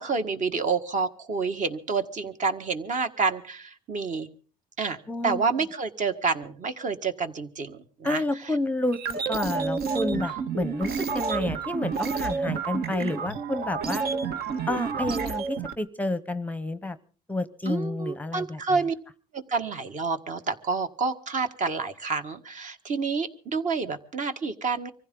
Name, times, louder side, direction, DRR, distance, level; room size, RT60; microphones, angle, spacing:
voice 1, 0.0-4.3 4.8-5.0 5.2-8.2 17.7-18.9 19.3-24.9, right 4 dB, 50° right, 8 dB, 1.8 m, -28 dB
voice 2, 5.1-5.7 8.0-14.0 14.7-17.0 17.3-18.8, left 2 dB, 10° left, 14 dB, 0.8 m, -30 dB
sound 1, 8.9-15.7, right 5 dB, 65° right, 1.5 m, -29 dB
24.5 x 15.5 x 3.8 m, 0.40 s
cardioid pair, 110°, 17 cm